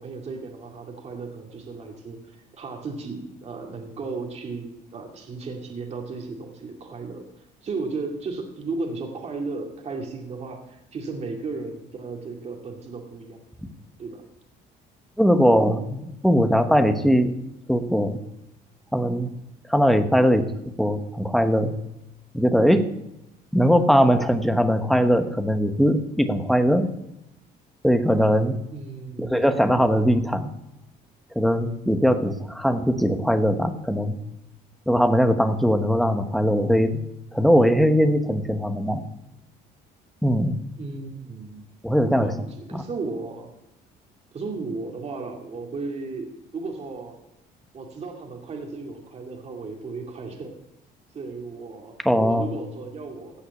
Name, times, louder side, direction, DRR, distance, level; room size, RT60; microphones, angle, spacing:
voice 1, 0.0-2.2 2.5-7.2 7.6-13.4 14.0-14.2 28.7-29.5 40.8-41.7 42.1-43.5 44.3-47.2 47.7-50.6 51.1-53.5, right 3 dB, 40° right, 1 dB, 2.3 m, -35 dB
voice 2, 15.2-17.3 17.7-18.2 18.9-19.3 19.7-20.5 20.8-21.7 22.3-22.9 23.5-26.9 27.8-28.6 29.2-30.5 31.3-34.2 34.9-37.0 37.3-39.0 40.2-40.6 41.8-42.4 42.7-42.9 52.0-52.4, equal, ahead, 8 dB, 1.1 m, -20 dB
16.5 x 5.7 x 8.1 m, 0.88 s
cardioid pair, 110°, 17 cm